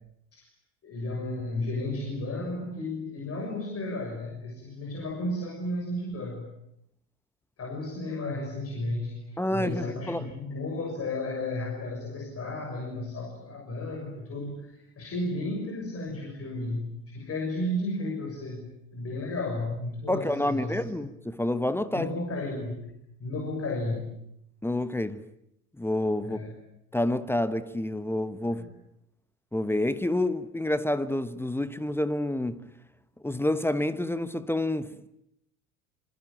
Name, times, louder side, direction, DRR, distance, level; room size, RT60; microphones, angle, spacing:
voice 1, 0.8-6.5 7.6-16.9 17.1-20.8 21.9-22.8 23.2-24.2 26.2-26.5 28.5-28.7, left 2 dB, 30° left, 6.6 m, -33 dB
voice 2, 9.4-10.3 20.1-22.1 24.6-25.3 25.8-26.4 26.9-28.7 29.5-32.7 33.2-35.1, left 1 dB, 5° left, 1.1 m, -28 dB
26.5 x 25.5 x 8.9 m
figure-of-eight pair, 70°, 45 cm